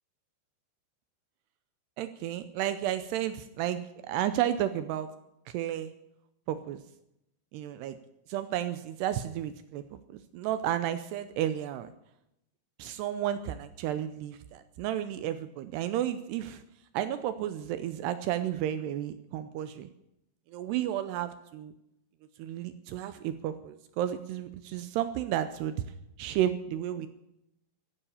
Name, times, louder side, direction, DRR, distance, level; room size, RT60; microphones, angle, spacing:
voice 1, 2.0-5.1 5.5-5.9 6.5-6.8 7.5-8.0 8.3-11.9 12.8-16.6 16.9-19.9 20.5-21.7 22.4-25.8 26.2-27.1, right 11 dB, 80° right, 11 dB, 2.6 m, -32 dB
14.5 x 10.0 x 7.1 m, 0.82 s
omnidirectional pair, 5.2 m